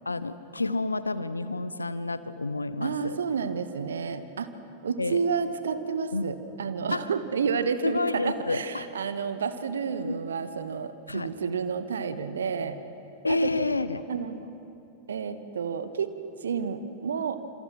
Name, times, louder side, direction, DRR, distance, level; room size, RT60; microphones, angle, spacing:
voice 1, 0.0-3.2 5.0-5.2 6.1-6.3 6.9-7.0 7.8-8.8 10.0-10.2 11.1-11.3 13.2-14.1, left 3 dB, 80° left, 14 dB, 0.9 m, -29 dB
voice 2, 2.8-4.5 4.8-12.8 13.3-13.5 14.1-14.5 15.1-16.1 16.4-17.4, right 6 dB, 65° right, 11 dB, 1.3 m, -30 dB
27.5 x 26.0 x 5.9 m, 2.8 s
figure-of-eight pair, 90°, 0 cm